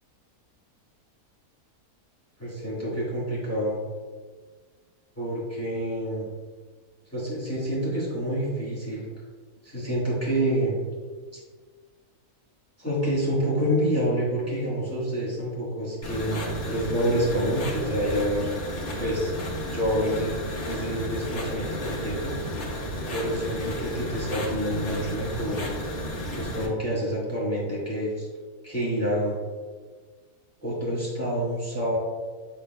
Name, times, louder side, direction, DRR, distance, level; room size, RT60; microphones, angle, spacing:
voice 1, 2.4-3.8 5.2-6.3 7.1-9.1 9.6-10.7 12.8-18.5 19.0-19.3 19.7-20.4 20.6-22.3 23.1-25.6 26.4-28.3 28.6-29.3 30.6-32.0, equal, 10° left, -8 dB, 1.6 m, -27 dB
sound 1, 16.0-26.7, equal, 85° left, 2.2 m, -33 dB
9.6 x 4.3 x 2.3 m, 1.5 s
omnidirectional pair, 1.7 m